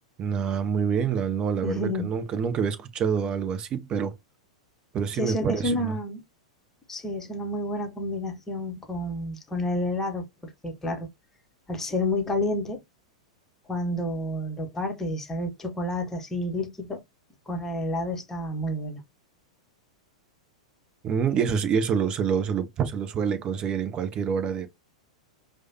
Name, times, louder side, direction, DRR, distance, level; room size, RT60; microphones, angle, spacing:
voice 1, 0.2-4.2 4.9-5.9 21.0-24.7, right 7 dB, 30° right, 0.6 m, -26 dB
voice 2, 1.6-2.1 5.1-6.2 6.9-11.1 11.7-12.8 13.7-17.0 17.5-19.0, left 1 dB, 10° left, 1.0 m, -30 dB
4.7 x 2.1 x 2.8 m
figure-of-eight pair, 95°, 3 cm